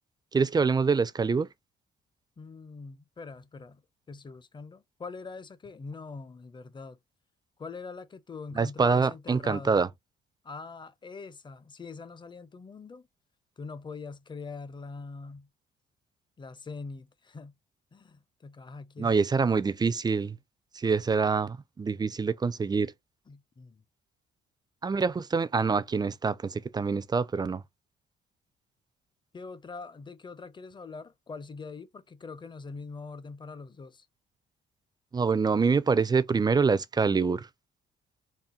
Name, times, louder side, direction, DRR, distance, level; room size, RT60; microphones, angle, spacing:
voice 1, 0.3-1.5 8.5-9.9 19.0-20.4 20.7-22.9 24.8-27.6 35.1-37.5, right 5 dB, 20° right, 0.4 m, -25 dB
voice 2, 2.4-3.8 4.1-7.0 7.6-9.8 10.4-13.1 13.6-15.5 16.4-17.5 17.9-19.2 23.3-23.8 29.3-34.1, left 4 dB, 25° left, 0.6 m, -43 dB
4.2 x 2.1 x 3.7 m
cardioid pair, 90°, 20 cm